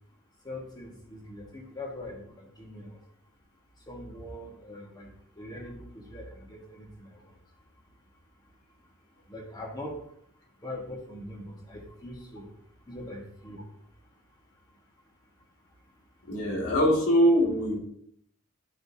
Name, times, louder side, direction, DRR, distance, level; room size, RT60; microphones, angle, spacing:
voice 1, 0.4-2.9 3.9-5.1 5.4-7.3 9.3-9.9 10.6-12.5 12.9-13.6, left 1 dB, 20° left, 0 dB, 1.5 m, -42 dB
voice 2, 16.3-17.8, equal, 85° left, -2 dB, 2.4 m, -23 dB
11.0 x 5.7 x 2.8 m, 0.69 s
head